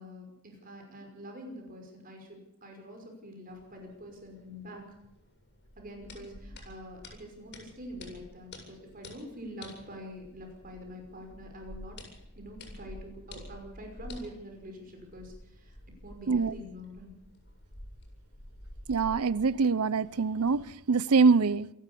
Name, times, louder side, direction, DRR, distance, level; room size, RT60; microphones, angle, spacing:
voice 1, 0.0-4.8 5.8-12.0 12.4-15.8 16.0-17.1, equal, 40° right, 5.6 m, -45 dB
sound 1, 3.5-20.6, left 1 dB, 50° left, 7.2 m, -50 dB
voice 2, 18.9-21.7, right 4 dB, 90° right, 0.7 m, -24 dB
27.0 x 12.0 x 8.4 m
head